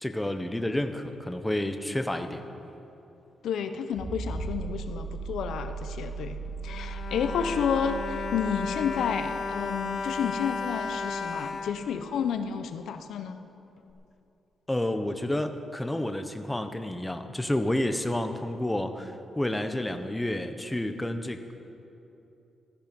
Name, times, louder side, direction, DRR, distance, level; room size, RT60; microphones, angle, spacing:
voice 1, 0.0-2.4 14.7-21.5, left 1 dB, 10° left, 7 dB, 1.0 m, -30 dB
voice 2, 3.4-6.4 6.6-13.4, left 7 dB, 80° left, 8 dB, 0.8 m, -31 dB
sound 1, 3.9-12.4 13.9-14.0, right 4 dB, 25° right, 2.3 m, -38 dB
Bowed string instrument, 6.4-12.7 13.4-13.5 13.8-13.9, left 4 dB, 55° left, 1.0 m, -34 dB
16.0 x 13.5 x 5.3 m, 2.9 s
cardioid pair, 95°, 0 cm